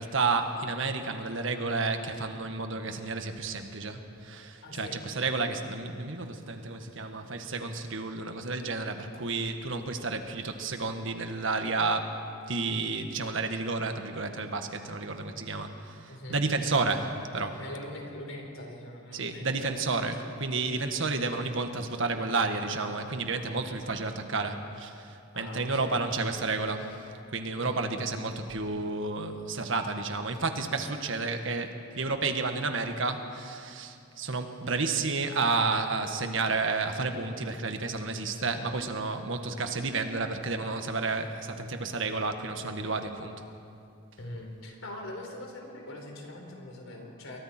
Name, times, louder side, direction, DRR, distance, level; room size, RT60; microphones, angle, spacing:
voice 1, 0.0-17.6 19.1-43.4, right 3 dB, 65° right, 6 dB, 1.6 m, -31 dB
voice 2, 4.6-5.0 16.1-16.4 17.6-20.1 23.5-23.8 25.3-26.0 27.6-27.9 44.2-47.4, left 1 dB, 75° left, 1 dB, 4.2 m, -42 dB
29.0 x 22.5 x 4.5 m, 2.5 s
head